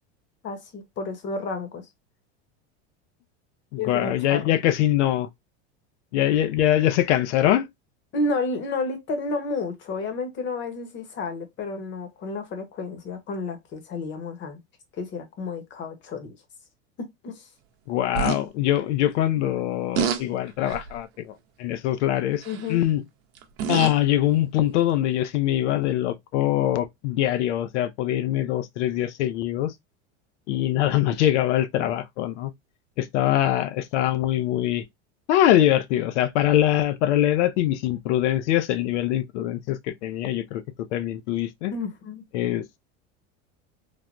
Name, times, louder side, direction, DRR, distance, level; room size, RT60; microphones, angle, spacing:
voice 1, 0.4-1.8 3.8-4.6 8.1-14.6 15.0-16.4 17.2-17.4 22.5-22.8 41.7-42.2, left 3 dB, 35° left, 0.8 m, -31 dB
voice 2, 3.7-5.3 6.1-7.7 17.9-21.3 21.6-22.4 22.7-23.0 23.7-29.7 30.5-32.5 33.0-34.8 35.3-40.6 40.9-41.7 42.3-42.6, left 12 dB, 90° left, 0.5 m, -23 dB
sound 1, 18.1-18.4 20.0-20.2 20.7-21.0 22.4-22.7 23.4-24.0 25.0-25.1, right 7 dB, 65° right, 0.7 m, -27 dB
3.3 x 2.1 x 2.4 m
supercardioid pair, 135°, 34 cm